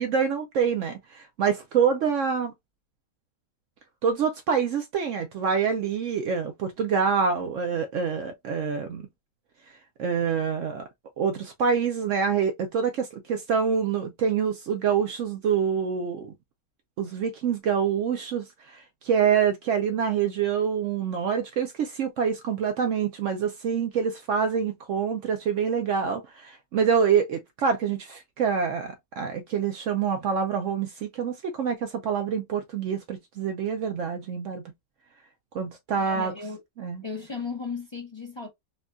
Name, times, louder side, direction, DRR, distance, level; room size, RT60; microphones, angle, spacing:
voice 1, 0.0-2.5 4.0-9.0 9.7-10.9 11.2-16.3 17.0-34.6 35.5-36.3 36.8-37.0, right 6 dB, 85° right, 0.6 m, -26 dB
voice 2, 35.9-36.6 37.0-38.5, left 4 dB, 45° left, 0.3 m, -35 dB
4.2 x 2.3 x 2.4 m
omnidirectional pair, 1.9 m